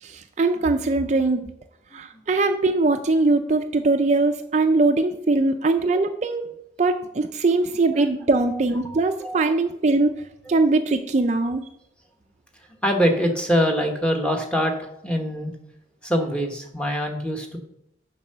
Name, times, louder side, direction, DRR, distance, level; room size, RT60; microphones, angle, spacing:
voice 1, 0.0-1.5 1.9-6.4 6.8-10.1 10.5-11.7, right 3 dB, 40° right, 6 dB, 0.4 m, -21 dB
voice 2, 8.8-9.4 10.5-10.6 12.8-15.5 16.0-17.6, equal, 5° left, 3 dB, 1.1 m, -24 dB
7.2 x 5.3 x 6.6 m, 0.80 s
head